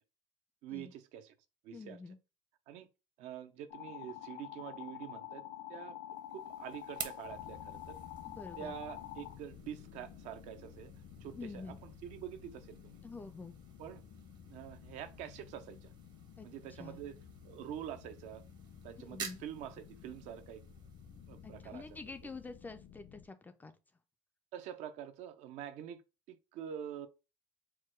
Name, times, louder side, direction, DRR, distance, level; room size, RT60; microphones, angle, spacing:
voice 1, 0.6-1.3 1.6-2.0 2.7-2.9 3.2-5.4 5.7-6.0 6.3-8.0 8.6-10.9 11.2-13.0 13.8-14.0 14.4-15.9 16.4-17.2 17.4-18.4 18.8-20.6 21.3-21.8 24.5-26.0 26.3-27.1, right 10 dB, 65° right, 0.6 m, -46 dB
voice 2, 1.7-2.2 8.3-8.7 11.4-11.8 13.0-13.6 16.4-16.5 16.8-17.0 19.0-19.4 21.4-23.7, left 4 dB, 15° left, 0.3 m, -47 dB
sound 1, 3.7-9.4, left 12 dB, 75° left, 1.0 m, -47 dB
sound 2, 6.1-23.1, right 6 dB, 35° right, 0.7 m, -53 dB
sound 3, 7.2-23.3, left 7 dB, 55° left, 0.6 m, -54 dB
4.6 x 2.2 x 4.4 m
cardioid pair, 160°, 13 cm